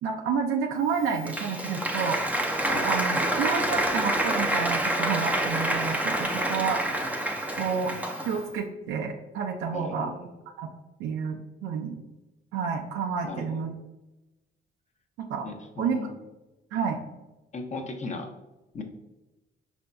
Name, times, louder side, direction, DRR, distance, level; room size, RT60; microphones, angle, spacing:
voice 1, 0.0-2.2 2.8-6.8 7.6-7.9 8.2-10.1 10.6-10.7 11.0-12.0 12.5-13.7 15.2-15.5 15.8-16.0 16.7-17.0, right 6 dB, 90° right, 1 dB, 0.5 m, -29 dB
Applause, 0.9-8.5, right 1 dB, 10° right, 0.5 m, -27 dB
voice 2, 6.2-6.7 9.7-10.3 13.2-13.7 15.4-16.1 17.5-18.3 18.7-18.8, left 3 dB, 35° left, 3 dB, 0.6 m, -37 dB
5.1 x 2.6 x 2.2 m, 1.0 s
cardioid pair, 90°, 20 cm